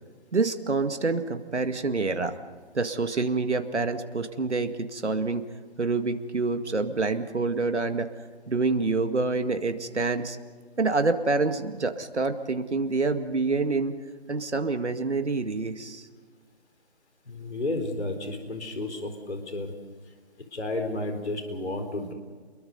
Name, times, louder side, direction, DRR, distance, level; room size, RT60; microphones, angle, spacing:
voice 1, 0.3-2.3 2.7-5.4 5.8-8.1 8.5-10.4 10.8-13.9 14.3-16.1, right 3 dB, 90° right, 7 dB, 2.1 m, -27 dB
voice 2, 17.3-19.7 20.5-22.1, left 2 dB, 75° left, 6 dB, 4.3 m, -32 dB
29.5 x 22.5 x 5.5 m, 1.5 s
figure-of-eight pair, 170°, 33 cm